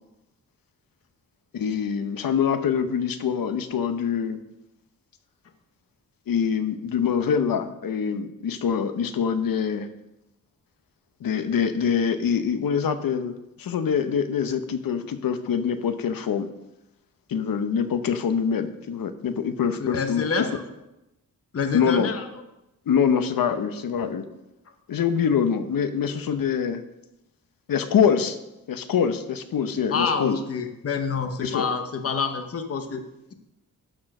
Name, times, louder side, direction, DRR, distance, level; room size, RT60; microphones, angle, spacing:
voice 1, 1.5-4.4 6.3-9.9 11.2-16.5 17.3-20.5 21.7-22.1 22.9-24.3 24.9-26.8 27.7-28.4 28.7-30.4 31.4-31.7, left 7 dB, 70° left, 10 dB, 0.8 m, -24 dB
voice 2, 19.9-20.5 21.5-22.3 29.9-33.0, left 5 dB, 40° left, 6 dB, 0.8 m, -27 dB
12.0 x 4.5 x 6.5 m, 0.92 s
wide cardioid pair, 155°, 35 cm